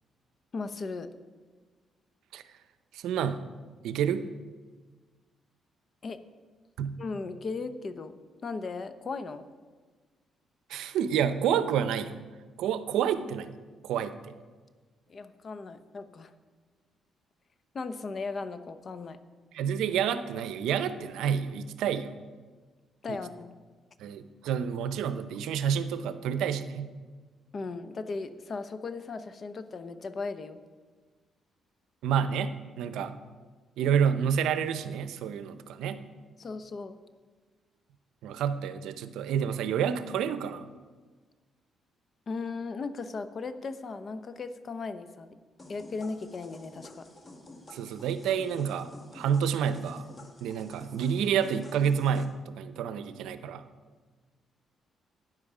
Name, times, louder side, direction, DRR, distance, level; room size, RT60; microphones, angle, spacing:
voice 1, 0.5-1.1 6.0-6.2 7.0-9.4 15.1-16.3 17.7-19.2 23.0-23.5 27.5-30.6 36.4-37.0 42.3-45.3 45.7-47.1, left 4 dB, 45° left, 11 dB, 0.8 m, -37 dB
voice 2, 2.9-3.4 3.8-4.3 6.8-7.0 10.7-12.2 12.6-13.6 13.8-14.1 19.5-22.1 23.1-23.2 24.0-26.9 32.0-33.1 33.8-36.0 38.2-40.7 47.7-50.1 50.4-53.6, right 8 dB, 85° right, 11 dB, 0.6 m, -29 dB
sound 1, 45.6-52.3, left 1 dB, 30° left, 1.6 m, -51 dB
12.5 x 9.5 x 4.9 m, 1.4 s
cardioid pair, 90°, 0 cm